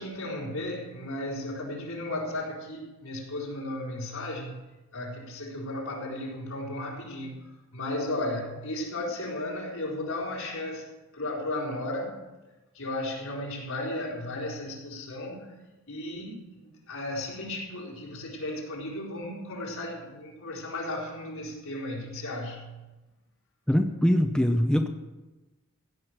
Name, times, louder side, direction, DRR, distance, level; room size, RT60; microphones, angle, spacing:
voice 1, 0.0-4.6 4.9-12.3 12.7-22.9, left 1 dB, 75° left, -3 dB, 4.4 m, -35 dB
voice 2, 23.7-24.9, equal, 5° left, 4 dB, 0.7 m, -23 dB
16.0 x 6.4 x 9.4 m, 1.1 s
head